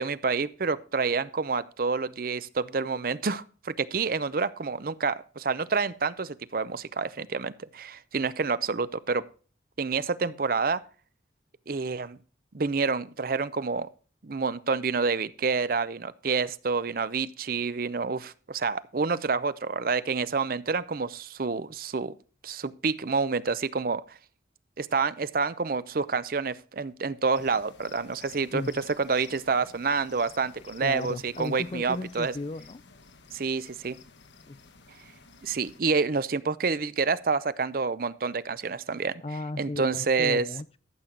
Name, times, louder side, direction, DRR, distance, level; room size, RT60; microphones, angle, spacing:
voice 1, 0.0-9.2 9.8-10.8 11.7-12.2 12.5-13.9 14.2-22.1 22.4-24.2 24.8-32.3 33.3-34.0 35.4-39.2 39.6-40.5, right 4 dB, 50° right, 0.6 m, -28 dB
sound 1, 27.3-35.8, left 5 dB, 75° left, 1.2 m, -53 dB
voice 2, 28.5-28.8 30.8-32.8 34.5-34.6 39.2-40.8, left 2 dB, 30° left, 0.4 m, -35 dB
13.5 x 7.5 x 3.9 m
head